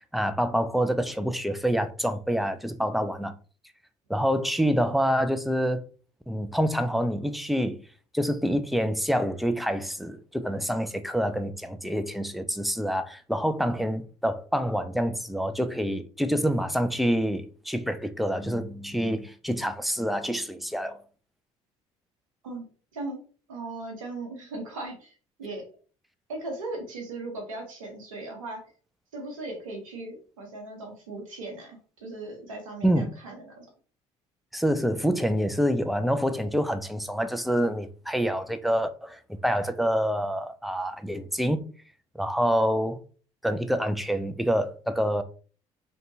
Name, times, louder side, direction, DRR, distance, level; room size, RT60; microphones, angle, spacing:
voice 1, 0.0-3.3 4.1-5.8 6.3-7.8 8.1-21.0 32.8-33.1 34.5-41.7 42.2-43.0 43.4-45.2, equal, ahead, 0.4 m, -27 dB
voice 2, 23.5-25.1 25.4-25.6 26.3-28.6 29.1-33.7, right 2 dB, 90° right, 0.8 m, -38 dB
2.7 x 2.2 x 2.7 m
hypercardioid pair, 55°, 17 cm